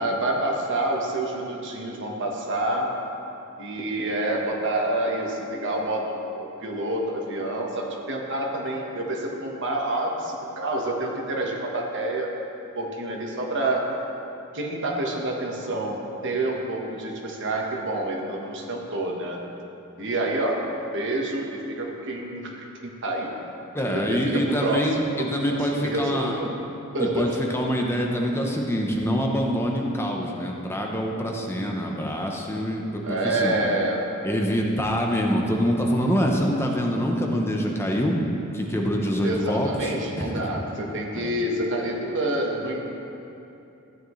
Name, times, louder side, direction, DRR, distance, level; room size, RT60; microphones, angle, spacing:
voice 1, 0.0-2.9 3.6-12.3 12.7-13.9 14.5-19.4 20.0-20.6 20.9-22.5 23.0-23.3 23.8-26.5 26.9-27.6 33.0-34.1 39.2-42.8, right 1 dB, 60° right, 0 dB, 1.3 m, -28 dB
voice 2, 23.7-26.4 27.0-33.6 34.2-38.2 38.5-40.5 41.1-41.3, equal, 10° left, 0 dB, 0.8 m, -25 dB
14.0 x 9.3 x 3.2 m, 2.8 s
head